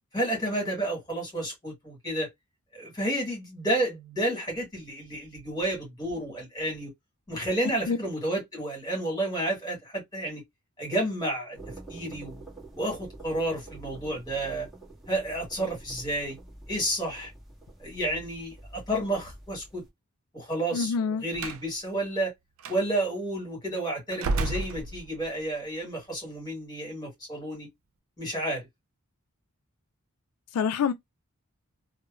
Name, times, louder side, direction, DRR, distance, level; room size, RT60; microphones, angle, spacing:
voice 1, 0.1-2.3 2.7-6.9 7.3-10.4 10.8-11.6 11.9-12.4 12.8-14.7 15.1-16.4 16.7-17.3 17.8-19.8 20.3-22.3 22.7-27.7 28.2-28.7, right 1 dB, 20° left, 1.7 m, -31 dB
sound 1, 11.5-19.9, right 2 dB, ahead, 1.3 m, -47 dB
voice 2, 20.7-21.2 30.5-30.9, left 6 dB, 85° left, 0.3 m, -26 dB
Slam, 21.3-21.7 22.6-22.8 24.1-25.4, right 3 dB, 65° right, 0.4 m, -31 dB
3.0 x 2.1 x 2.4 m
head